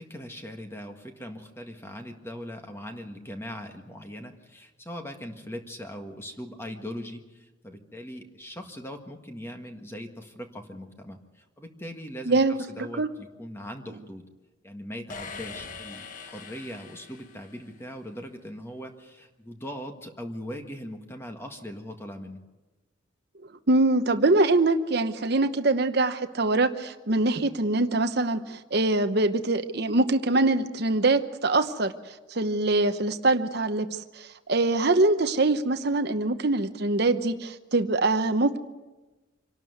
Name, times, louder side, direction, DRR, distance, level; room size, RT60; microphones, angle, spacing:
voice 1, 0.0-14.2 14.6-22.4, equal, 10° left, 4 dB, 1.7 m, -40 dB
voice 2, 12.3-13.1 23.7-38.6, right 2 dB, 55° right, 8 dB, 1.0 m, -24 dB
sound 1, 15.1-17.9, left 4 dB, 40° left, 1.2 m, -42 dB
25.5 x 12.5 x 9.4 m, 1.1 s
head